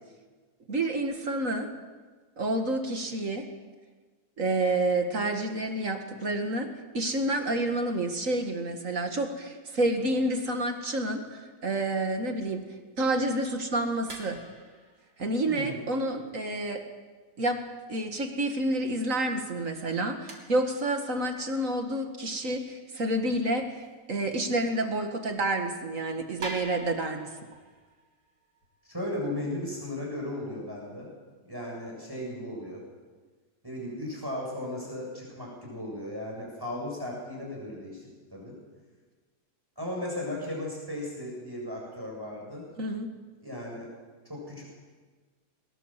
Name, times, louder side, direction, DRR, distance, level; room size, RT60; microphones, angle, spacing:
voice 1, 0.7-1.7 2.4-3.5 4.4-6.7 6.9-12.6 13.0-14.4 15.2-16.8 17.4-17.6 17.9-23.8 24.1-27.3 42.8-43.1, right 1 dB, 50° right, 5 dB, 2.3 m, -29 dB
sound 1, 14.1-16.4 16.9-17.0 17.4-17.5 18.0-18.1 18.5-18.6 19.6-19.7 20.3-21.6 22.5-22.6 23.0-23.1 23.6-23.9 24.7-24.9 25.2-25.3 25.8-25.9 26.4-29.8, right 2 dB, 80° right, 3.8 m, -45 dB
voice 2, 15.5-15.9 28.8-31.1 31.4-32.8 33.6-38.0 38.3-38.6 39.8-42.7 43.4-43.9 44.3-44.6, left 1 dB, 15° right, -2 dB, 7.2 m, -36 dB
22.0 x 20.5 x 7.5 m, 1.4 s
omnidirectional pair, 1.7 m